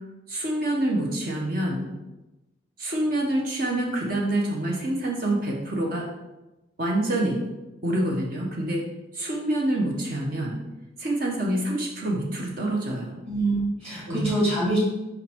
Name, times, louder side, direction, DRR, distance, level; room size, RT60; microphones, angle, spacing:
voice 1, 0.3-1.9 2.8-6.1 6.8-7.4 7.8-8.8 9.1-10.6 11.0-13.1 14.1-14.3, right 1 dB, 50° right, -1 dB, 1.0 m, -26 dB
voice 2, 13.2-14.8, right 2 dB, 30° right, -5 dB, 2.0 m, -25 dB
5.6 x 5.1 x 3.6 m, 1.0 s
head